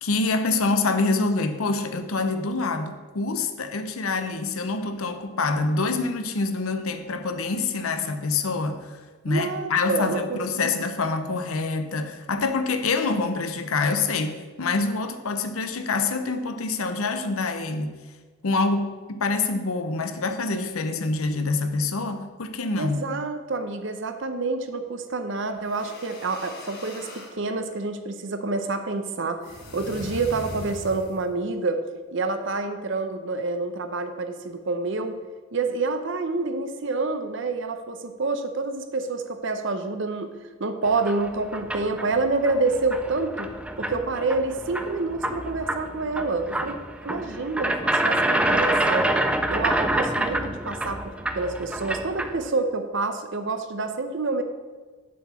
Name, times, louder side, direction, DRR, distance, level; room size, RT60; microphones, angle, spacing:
voice 1, 0.0-18.0 18.4-23.0, left 3 dB, 80° left, 8 dB, 0.7 m, -26 dB
voice 2, 9.3-10.9 22.8-29.4 29.7-31.8 32.1-35.2 35.5-40.3 40.6-43.5 43.8-46.8 47.0-49.1 49.5-54.4, right 3 dB, 55° right, 8 dB, 0.7 m, -28 dB
sound 1, 25.5-27.4 29.4-31.3, left 1 dB, 45° left, 1.5 m, -39 dB
sound 2, 40.8-52.5, right 1 dB, 5° right, 0.3 m, -27 dB
7.2 x 4.8 x 6.9 m, 1.4 s
head